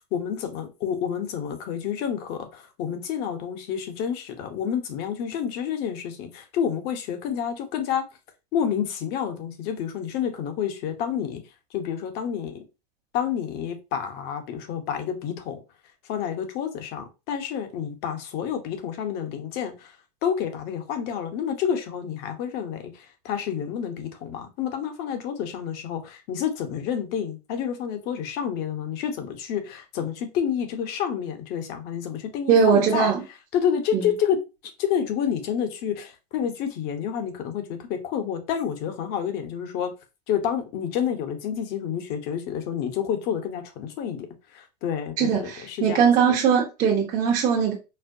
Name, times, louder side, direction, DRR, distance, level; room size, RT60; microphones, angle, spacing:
voice 1, 0.1-8.0 8.5-11.4 11.7-12.6 13.1-15.6 16.1-19.9 20.2-33.1 33.5-34.4 34.8-39.9 40.3-44.3 44.5-46.0 46.3-46.4, left 8 dB, 50° left, 0.9 m, -29 dB
voice 2, 32.5-33.2 33.9-34.1 45.2-47.7, right 7 dB, 40° right, 0.8 m, -20 dB
4.2 x 2.0 x 2.6 m
hypercardioid pair, 110°, 21 cm